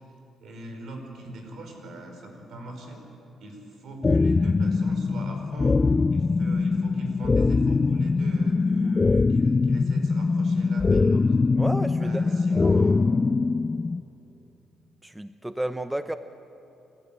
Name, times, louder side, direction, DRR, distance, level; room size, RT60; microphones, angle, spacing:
voice 1, 0.4-3.0 3.4-11.3 12.0-13.0, right 1 dB, 65° right, 3 dB, 4.9 m, -41 dB
sound 1, 4.0-14.0, left 4 dB, 25° left, 0.4 m, -22 dB
voice 2, 11.6-12.3 15.0-16.2, right 1 dB, 5° right, 10 dB, 0.7 m, -31 dB
27.0 x 13.5 x 8.7 m, 2.8 s
cardioid pair, 90°, 0 cm